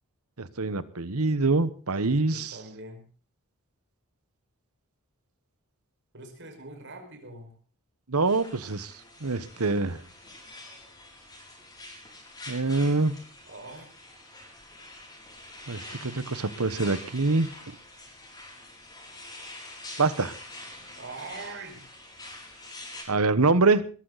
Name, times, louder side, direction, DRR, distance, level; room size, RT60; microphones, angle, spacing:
voice 1, 0.4-2.6 8.1-8.9 9.2-10.0 12.5-13.1 15.7-17.7 20.0-20.3 23.1-23.8, right 3 dB, 85° right, 15 dB, 1.2 m, -25 dB
voice 2, 2.3-3.0 6.1-7.5 13.5-13.9 21.0-21.9, right 3 dB, 55° right, 3 dB, 5.5 m, -42 dB
sound 1, 8.3-23.0, left 2 dB, 20° left, 6.5 m, -45 dB
20.5 x 14.5 x 4.1 m, 0.40 s
head